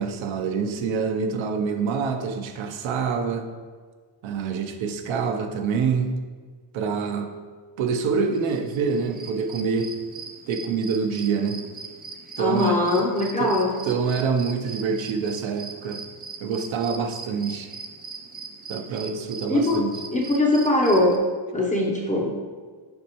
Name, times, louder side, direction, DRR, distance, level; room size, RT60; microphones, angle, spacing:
voice 1, 0.0-3.5 4.2-6.1 6.7-7.3 7.8-9.9 10.5-11.6 12.4-12.8 13.4-13.6 13.8-16.0 16.4-17.7 18.7-19.9, right 5 dB, 70° right, 5 dB, 0.7 m, -26 dB
sound 1, 8.3-21.2, right 4 dB, 20° right, 0.3 m, -40 dB
voice 2, 12.4-13.7 19.5-19.8 20.1-21.2 21.5-22.3, left 1 dB, 15° left, -2 dB, 0.6 m, -21 dB
7.7 x 5.3 x 2.9 m, 1.5 s
cardioid pair, 175°, 49 cm